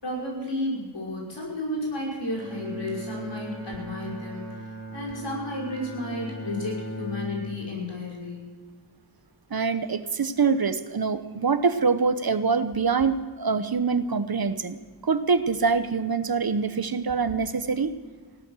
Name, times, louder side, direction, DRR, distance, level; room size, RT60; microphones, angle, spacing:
voice 1, 0.0-4.4 4.9-8.5, left 1 dB, 90° left, -3 dB, 5.7 m, -32 dB
Bowed string instrument, 2.3-7.7, equal, 45° right, 3.3 m, -38 dB
voice 2, 9.5-14.8 15.0-17.9, right 5 dB, 60° right, 11 dB, 1.1 m, -24 dB
17.0 x 12.5 x 6.3 m, 1.4 s
wide cardioid pair, 55°, 42 cm